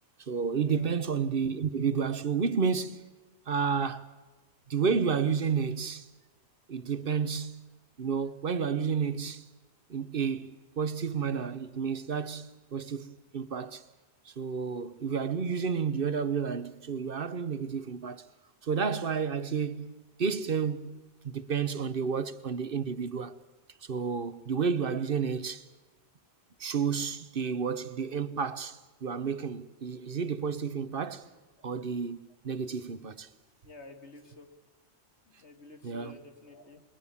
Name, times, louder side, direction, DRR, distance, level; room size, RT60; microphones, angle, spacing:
voice 1, 0.2-3.0 3.5-4.1 4.7-6.1 6.7-7.7 8.0-9.5 9.9-13.8 14.2-18.3 18.6-23.3 23.8-25.7 26.6-31.3 31.6-33.3 35.8-36.2, right 6 dB, 55° right, 1.1 m, -31 dB
voice 2, 33.6-34.5 35.3-36.8, left 3 dB, 90° left, 2.7 m, -50 dB
28.0 x 22.0 x 7.2 m
omnidirectional pair, 1.1 m